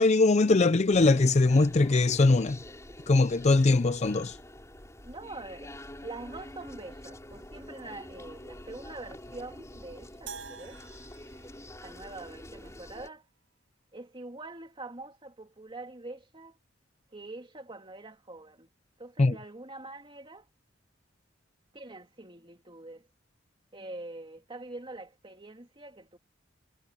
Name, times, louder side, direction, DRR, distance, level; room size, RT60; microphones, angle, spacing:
voice 1, 0.0-2.6 3.1-4.4 19.2-19.4, left 3 dB, 35° left, 0.5 m, -22 dB
sound 1, 0.9-13.1, left 1 dB, 15° left, 5.0 m, -47 dB
voice 2, 5.0-10.8 11.8-13.3 13.9-16.6 17.1-18.7 19.0-20.5 21.7-23.1 23.7-26.2, right 2 dB, 25° right, 2.9 m, -44 dB
sound 2, 10.3-12.7, right 6 dB, 90° right, 6.4 m, -47 dB
head